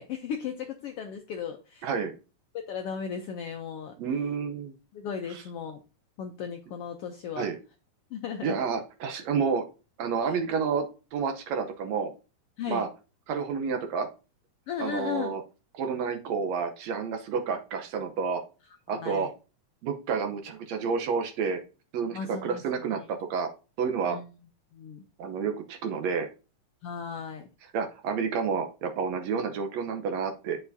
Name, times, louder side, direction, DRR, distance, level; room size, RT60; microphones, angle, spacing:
voice 1, 0.0-1.9 2.7-3.9 4.9-5.8 6.2-7.5 8.1-8.6 10.2-10.3 12.6-12.9 14.7-15.3 18.9-19.3 22.1-22.9 24.1-24.3 24.7-25.0 26.8-27.5, left 7 dB, 80° left, 5 dB, 1.3 m, -36 dB
voice 2, 1.8-2.1 4.0-4.7 5.3-5.4 7.4-7.6 8.4-9.7 10.0-10.9 11.1-12.1 12.7-12.9 13.3-14.1 14.8-15.4 15.7-18.4 18.9-19.3 19.8-21.6 21.9-23.5 23.8-24.2 25.2-26.3 27.7-30.6, right 6 dB, 70° right, 5 dB, 2.0 m, -29 dB
9.4 x 6.6 x 2.7 m, 0.32 s
omnidirectional pair, 3.5 m